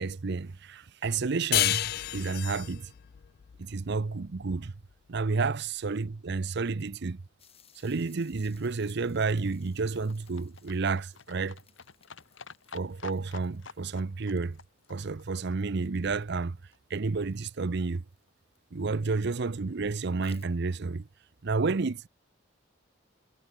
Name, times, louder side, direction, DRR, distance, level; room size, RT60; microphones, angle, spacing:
voice 1, 0.0-2.9 3.6-4.7 5.1-7.2 7.8-11.6 12.7-14.6 14.9-16.6 16.9-18.0 18.7-21.1 21.4-22.1, right 4 dB, 60° right, 0.6 m, -30 dB
sound 1, 1.5-4.7, left 15 dB, 50° left, 0.3 m, -30 dB
sound 2, 7.4-18.8 20.2-20.5, left 8 dB, 30° left, 8.0 m, -63 dB
Livestock farm animals working animals, 8.2-16.5 16.7-16.8 17.0-17.1 17.3-17.4 17.7-17.8 18.0-18.1 18.3-18.4 18.6-18.7 18.9-19.0, left 5 dB, 70° left, 1.7 m, -51 dB
head